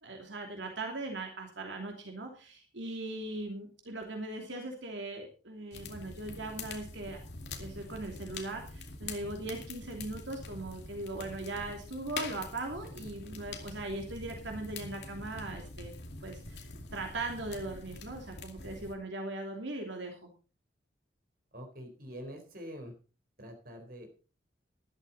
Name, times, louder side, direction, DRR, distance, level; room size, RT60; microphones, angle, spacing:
voice 1, 0.0-7.2 7.6-15.9 16.2-20.3, right 2 dB, 80° right, 2 dB, 2.9 m, -39 dB
sound 1, 5.7-19.0, left 3 dB, 65° left, 2.4 m, -45 dB
voice 2, 21.5-22.9 23.4-24.2, equal, 50° right, 4 dB, 4.1 m, -45 dB
13.0 x 12.0 x 4.2 m, 0.34 s
head